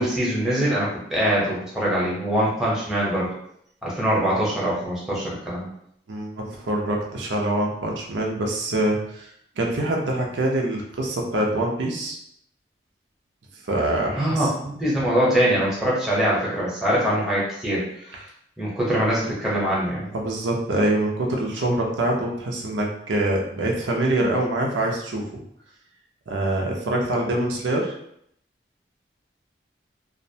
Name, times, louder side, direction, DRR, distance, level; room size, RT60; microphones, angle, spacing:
voice 1, 0.0-3.3 3.8-5.7 14.2-18.2 18.6-20.1, equal, 5° right, -7 dB, 0.7 m, -23 dB
voice 2, 6.1-9.3 9.6-12.2 13.7-14.5 20.1-25.4 26.3-27.9, right 1 dB, 90° right, -1 dB, 0.5 m, -25 dB
2.5 x 2.1 x 2.7 m, 0.70 s
head